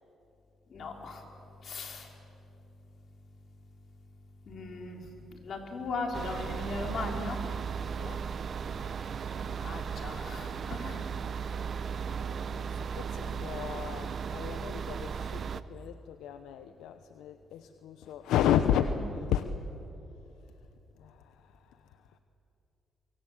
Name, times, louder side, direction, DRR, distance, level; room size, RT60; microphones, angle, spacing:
voice 1, 0.7-1.2 1.6-2.1 4.5-5.0 5.3-7.4 9.4-11.0, left 3 dB, 55° left, 2 dB, 4.3 m, -38 dB
sound 1, 6.1-15.6, right 6 dB, 50° right, 0.9 m, -36 dB
voice 2, 7.9-8.3 9.7-19.5 21.0-22.2, left 9 dB, 90° left, 9 dB, 0.9 m, -34 dB
24.5 x 23.5 x 8.3 m, 3.0 s
cardioid pair, 90°, 0 cm